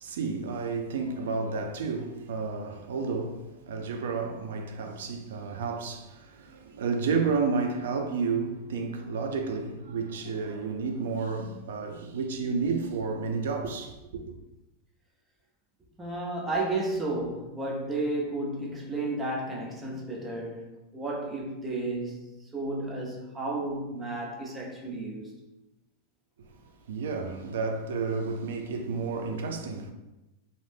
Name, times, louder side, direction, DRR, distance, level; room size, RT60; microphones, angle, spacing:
voice 1, 0.0-14.3 26.9-29.9, right 4 dB, 85° right, 0.4 m, -31 dB
voice 2, 16.0-25.3, right 2 dB, 10° right, 0.4 m, -32 dB
2.6 x 2.0 x 3.3 m
supercardioid pair, 175°, 0 cm